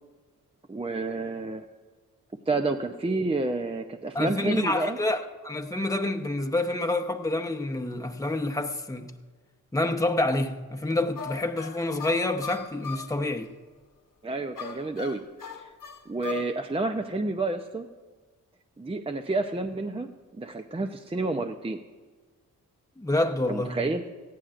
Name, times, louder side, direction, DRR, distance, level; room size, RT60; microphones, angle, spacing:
voice 1, 0.7-1.6 2.5-5.0 14.2-15.2 15.6-15.7 16.1-17.9 18.8-21.8 23.5-24.0, right 2 dB, 15° right, 0.6 m, -29 dB
voice 2, 4.1-9.1 9.7-13.5 23.0-23.8, left 2 dB, 10° left, 0.9 m, -28 dB
sound 1, 11.2-13.2 14.6-16.6, left 6 dB, 60° left, 1.3 m, -38 dB
19.0 x 14.0 x 2.5 m
cardioid pair, 55°, 36 cm